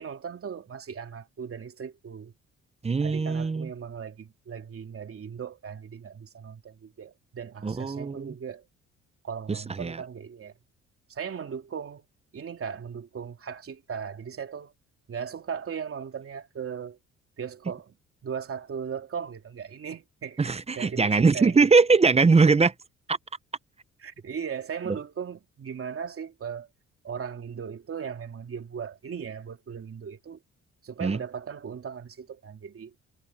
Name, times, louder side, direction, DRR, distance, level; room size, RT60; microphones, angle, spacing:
voice 1, 0.0-2.3 3.0-8.6 9.2-10.5 11.1-12.0 12.3-14.7 15.1-17.0 17.4-18.0 18.2-21.7 24.0-26.7 27.0-30.4 30.8-32.9, right 7 dB, 45° right, 2.9 m, -37 dB
voice 2, 2.8-3.7 7.6-8.3 9.5-10.0 20.4-22.7 23.1-23.2 31.0-31.2, right 4 dB, 20° right, 0.7 m, -21 dB
cardioid pair, 90°, 30 cm